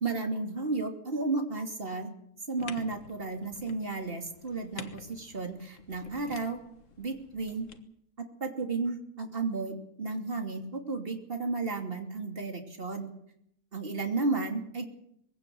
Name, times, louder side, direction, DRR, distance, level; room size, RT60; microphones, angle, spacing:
voice 1, 0.0-2.1 2.5-6.6 7.0-7.7 8.2-13.1 13.7-14.8, right 3 dB, 35° right, 4 dB, 3.1 m, -33 dB
sound 1, 2.6-7.8, left 5 dB, 50° left, 1.7 m, -48 dB
22.0 x 17.0 x 7.9 m, 0.72 s
omnidirectional pair, 1.7 m